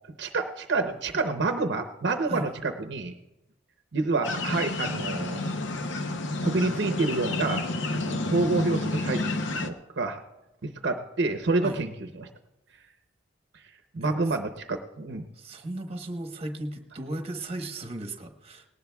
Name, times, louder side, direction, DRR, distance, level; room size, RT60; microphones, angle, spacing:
voice 1, 0.2-3.1 3.9-5.4 6.4-10.2 10.6-11.9 12.2-12.3 13.9-15.2, right 3 dB, 65° right, 6 dB, 0.7 m, -28 dB
sound 1, 4.2-9.7, left 2 dB, 75° left, 0.8 m, -30 dB
voice 2, 15.3-18.7, right 1 dB, 35° right, 5 dB, 1.1 m, -36 dB
19.0 x 18.0 x 2.3 m, 0.96 s
head